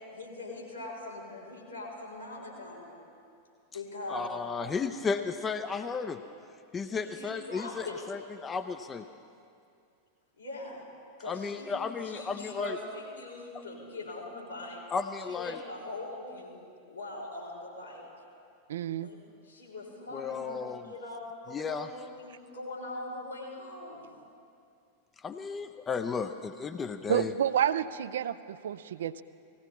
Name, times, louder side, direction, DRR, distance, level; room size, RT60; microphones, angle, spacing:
voice 1, 0.0-3.0 3.7-4.3 6.9-8.0 10.4-10.8 11.2-11.7 12.0-14.8 15.3-18.1 19.0-19.2 19.4-20.6 20.9-21.9 22.2-24.1, left 2 dB, 85° left, -7 dB, 4.5 m, -41 dB
voice 2, 4.1-6.2 6.7-9.0 11.3-12.8 13.5-13.6 14.9-15.6 20.1-20.8 21.5-21.9 25.2-27.3, left 5 dB, 20° left, 9 dB, 0.5 m, -34 dB
voice 3, 18.7-19.1 27.1-29.2, right 10 dB, 60° right, 14 dB, 0.4 m, -29 dB
18.5 x 16.5 x 4.3 m, 2.5 s
figure-of-eight pair, 90°, 0 cm